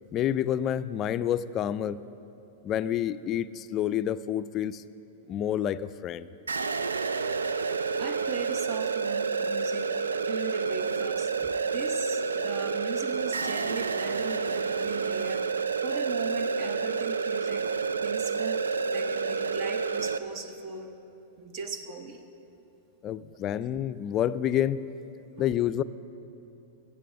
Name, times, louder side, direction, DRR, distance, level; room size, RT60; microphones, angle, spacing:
voice 1, 0.1-2.0 2.6-4.8 5.3-6.3 23.0-24.8 25.4-25.8, left 10 dB, 35° left, 14 dB, 0.4 m, -28 dB
sound 1, 6.5-20.2, right 5 dB, 85° right, 0.4 m, -29 dB
voice 2, 8.0-11.3 11.6-17.7 18.0-21.0 21.4-22.2 25.4-25.5, right 5 dB, 45° right, 8 dB, 1.1 m, -38 dB
14.5 x 8.3 x 6.4 m, 2.8 s
hypercardioid pair, 105°, 0 cm